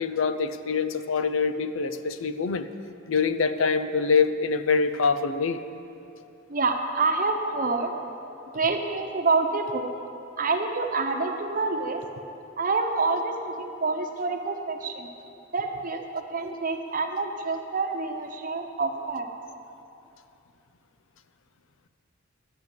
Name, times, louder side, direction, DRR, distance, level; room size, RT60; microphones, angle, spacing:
voice 1, 0.0-2.7 3.1-5.6, left 5 dB, 75° left, 11 dB, 0.5 m, -25 dB
voice 2, 6.5-7.9 8.5-9.9 10.4-12.0 12.6-15.1 15.5-19.3, right 3 dB, 40° right, 4 dB, 0.9 m, -27 dB
11.0 x 7.9 x 7.3 m, 2.7 s
head